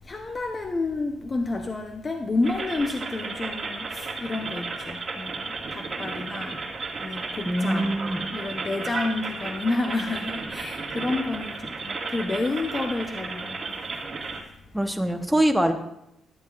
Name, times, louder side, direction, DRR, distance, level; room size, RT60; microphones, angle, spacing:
voice 1, 0.1-6.6 7.0-8.0 8.3-13.7, left 3 dB, 30° left, 3 dB, 0.8 m, -30 dB
sound 1, 2.4-14.4, right 4 dB, 45° right, 1.8 m, -34 dB
voice 2, 7.5-8.2 14.7-15.7, right 1 dB, 5° right, 5 dB, 0.9 m, -23 dB
13.0 x 7.9 x 2.5 m, 0.81 s
cardioid pair, 90°, 0 cm